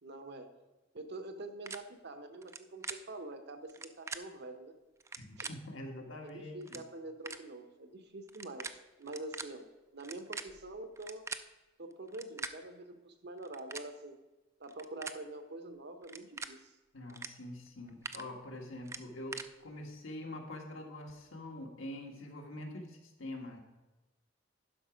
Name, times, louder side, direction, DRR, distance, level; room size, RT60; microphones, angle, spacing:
voice 1, 0.0-0.5 0.9-4.7 5.4-5.5 6.2-8.7 9.0-9.7 9.9-11.3 11.8-14.2 14.6-16.7, right 2 dB, 60° right, 7 dB, 0.9 m, -46 dB
sound 1, 1.7-1.8 2.4-2.6 2.8-3.0 3.7-4.2 5.0-5.5 6.3-6.4 6.6-6.8 7.3-7.4 8.3-8.7 9.0-9.4 10.0-11.4 12.1-12.5 13.4-13.9 14.6-15.2 16.0-16.5 17.1-17.3 17.7-18.2 18.9-19.5, right 4 dB, 15° right, 0.3 m, -42 dB
voice 2, 5.2-6.8 16.9-23.6, left 1 dB, 80° left, 2 dB, 1.6 m, -45 dB
11.0 x 5.9 x 5.1 m, 1.1 s
head